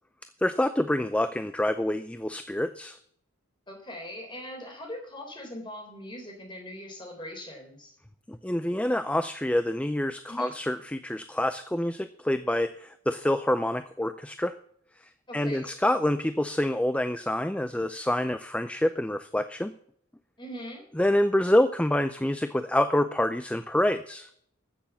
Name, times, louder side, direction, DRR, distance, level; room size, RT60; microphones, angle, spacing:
voice 1, 0.4-3.0 8.3-14.6 15.3-19.7 21.0-24.3, left 1 dB, 5° left, 10 dB, 0.5 m, -27 dB
voice 2, 3.7-8.0 10.3-10.6 15.3-15.7 20.4-20.8, equal, 25° left, 2 dB, 3.9 m, -41 dB
15.0 x 6.8 x 7.1 m, 0.66 s
head